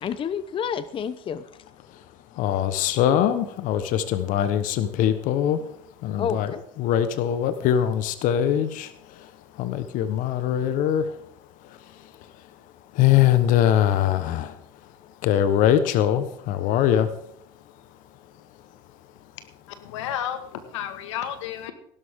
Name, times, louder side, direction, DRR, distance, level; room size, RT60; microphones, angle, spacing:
voice 1, 0.0-1.6 2.4-2.6 6.2-6.6, left 7 dB, 35° left, 15 dB, 0.7 m, -30 dB
voice 2, 2.4-5.6 6.0-6.5 6.8-9.3 9.6-11.1 12.9-14.6 15.2-17.1, left 10 dB, 60° left, 12 dB, 1.2 m, -22 dB
voice 3, 19.8-21.7, left 10 dB, 80° left, 9 dB, 1.8 m, -32 dB
16.5 x 12.5 x 3.7 m, 0.70 s
hypercardioid pair, 80°, 15 cm